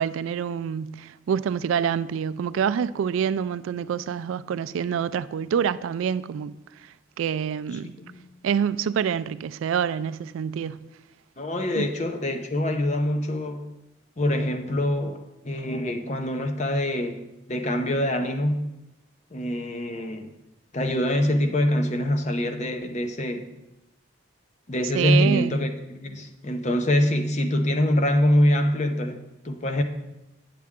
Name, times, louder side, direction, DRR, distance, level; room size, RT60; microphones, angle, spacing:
voice 1, 0.0-6.5 7.2-7.9 8.4-10.8 11.8-11.9 24.9-25.6, right 8 dB, 80° right, 0.3 m, -26 dB
voice 2, 7.7-8.3 11.4-13.7 14.2-18.6 19.3-20.3 20.7-23.5 24.7-29.8, left 1 dB, 35° left, 0.6 m, -25 dB
8.4 x 7.6 x 3.6 m
head